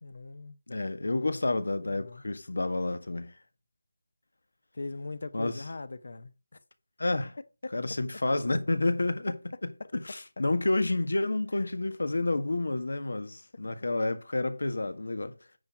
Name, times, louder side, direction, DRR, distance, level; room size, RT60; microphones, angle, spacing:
voice 1, 0.0-0.6 1.3-1.4 1.8-2.2 4.7-6.6 7.6-7.7 9.8-9.9, left 3 dB, 60° left, 0.9 m, -40 dB
voice 2, 0.7-3.3 5.3-5.6 7.0-7.4 7.7-9.4 9.9-15.3, left 2 dB, 85° left, 1.5 m, -29 dB
9.6 x 4.4 x 5.9 m
figure-of-eight pair, 175°, 0 cm